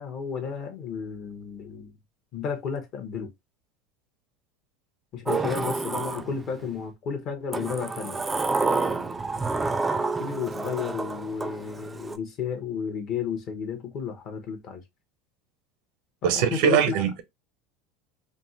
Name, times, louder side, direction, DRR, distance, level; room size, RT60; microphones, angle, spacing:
voice 1, 0.0-1.9 2.3-3.3 5.1-8.2 10.2-14.8 16.2-17.0, left 7 dB, 50° left, 0.9 m, -32 dB
Sliding door, 5.3-6.7 7.5-12.2, right 3 dB, 15° right, 0.3 m, -29 dB
voice 2, 16.2-17.2, right 8 dB, 70° right, 0.6 m, -22 dB
3.3 x 2.1 x 2.7 m
supercardioid pair, 110°, 0 cm